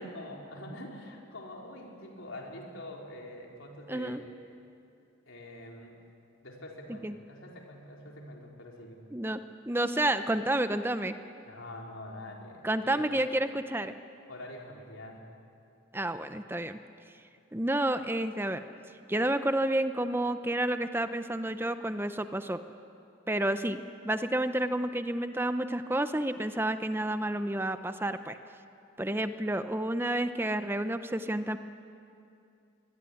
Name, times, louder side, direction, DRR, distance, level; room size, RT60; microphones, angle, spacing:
voice 1, 0.0-4.2 5.3-6.0 6.4-9.0 11.4-13.2 14.3-15.3, left 1 dB, 75° left, -1 dB, 4.5 m, -45 dB
voice 2, 3.9-4.2 7.0-7.1 9.1-11.2 12.6-13.9 15.9-16.8 17.5-18.6 19.1-22.6 23.3-23.8 24.0-28.4 29.0-31.6, right 1 dB, 10° right, 10 dB, 0.6 m, -30 dB
24.0 x 21.5 x 10.0 m, 2.6 s
head